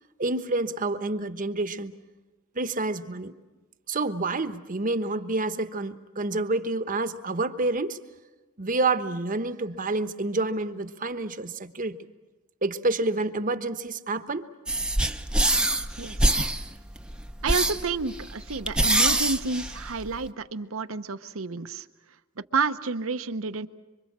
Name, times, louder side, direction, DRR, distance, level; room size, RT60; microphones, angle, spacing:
voice 1, 0.2-1.9 2.5-3.3 3.9-8.0 8.6-12.0 12.6-14.5, right 2 dB, 40° right, 10 dB, 1.1 m, -28 dB
sound 1, 14.7-20.3, right 1 dB, 5° right, 0.7 m, -25 dB
voice 2, 16.0-16.4 17.4-21.9 22.4-23.7, right 4 dB, 70° right, 11 dB, 0.9 m, -30 dB
26.0 x 24.5 x 7.4 m, 1.2 s
head